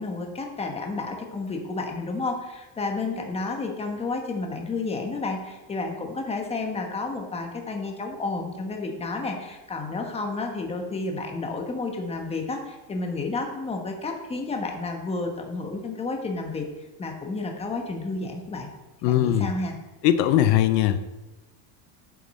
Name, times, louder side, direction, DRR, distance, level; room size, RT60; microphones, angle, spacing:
voice 1, 0.0-16.7 17.0-18.7 19.0-19.8, left 3 dB, 10° left, 3 dB, 1.1 m, -31 dB
voice 2, 19.0-19.5 20.0-21.0, left 11 dB, 75° left, 10 dB, 0.8 m, -20 dB
9.4 x 7.6 x 4.2 m, 1.1 s
supercardioid pair, 145°, 49 cm